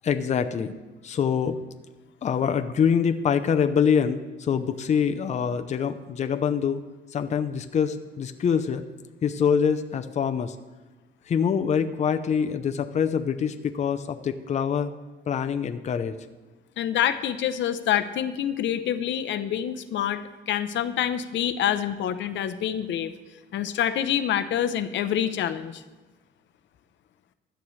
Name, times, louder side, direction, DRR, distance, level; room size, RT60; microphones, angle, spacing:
voice 1, 0.0-0.7 1.0-1.6 2.2-6.8 7.1-8.8 9.2-10.5 11.3-14.9 15.3-16.2, left 7 dB, 35° left, 8 dB, 0.6 m, -25 dB
voice 2, 16.8-23.1 23.5-25.8, left 10 dB, 70° left, 11 dB, 0.7 m, -26 dB
15.5 x 11.5 x 3.2 m, 1.2 s
cardioid pair, 135°, 20 cm